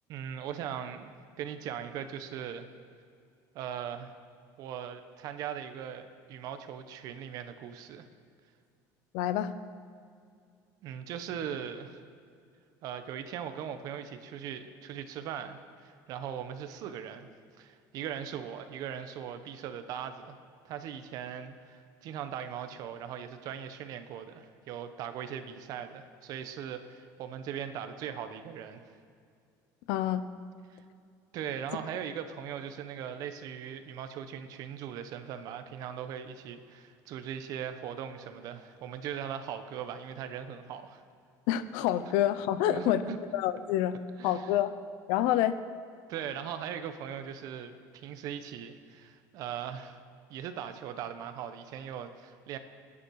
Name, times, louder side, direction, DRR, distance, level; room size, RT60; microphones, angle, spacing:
voice 1, 0.1-1.1 1.4-2.7 3.5-4.1 4.6-8.1 10.8-12.0 12.8-17.3 17.6-20.4 20.6-28.8 30.7-30.8 31.3-41.0 42.7-43.2 44.2-44.5 46.1-50.0 50.3-52.6, right 8 dB, 55° right, 9 dB, 1.2 m, -39 dB
voice 2, 9.1-9.5 29.9-30.3 41.5-43.0 43.3-44.0 44.2-44.7 45.1-45.6, left 12 dB, 80° left, 13 dB, 0.9 m, -27 dB
29.0 x 10.0 x 4.9 m, 2.4 s
cardioid pair, 160°, 8 cm